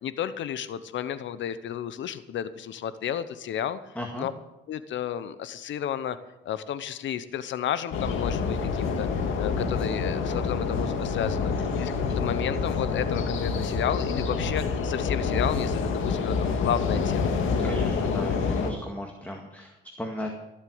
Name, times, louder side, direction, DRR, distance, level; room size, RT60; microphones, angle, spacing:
voice 1, 0.0-3.8 4.2-4.3 4.7-6.2 6.4-9.1 9.4-17.3, left 9 dB, 70° left, 13 dB, 0.9 m, -32 dB
voice 2, 4.0-4.3 17.6-20.3, left 1 dB, 10° left, 2 dB, 2.0 m, -36 dB
sound 1, 7.9-18.7, left 5 dB, 85° left, 2.0 m, -27 dB
15.5 x 8.0 x 7.9 m, 0.96 s
cardioid pair, 90°, 20 cm